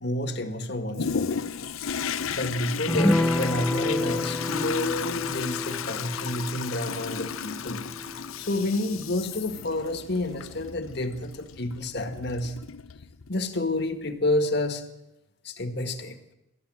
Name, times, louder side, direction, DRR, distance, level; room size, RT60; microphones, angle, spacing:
voice 1, 0.0-1.4 2.3-7.8 8.4-12.6 13.3-14.8 15.4-16.2, left 1 dB, 55° left, 9 dB, 1.7 m, -29 dB
Toilet flush, 0.9-13.4 13.9-14.0, left 7 dB, 90° left, 0.7 m, -34 dB
sound 1, 2.9-9.7 10.0-10.1 10.4-10.6, left 1 dB, ahead, 0.8 m, -30 dB
29.5 x 13.0 x 7.7 m, 0.91 s
head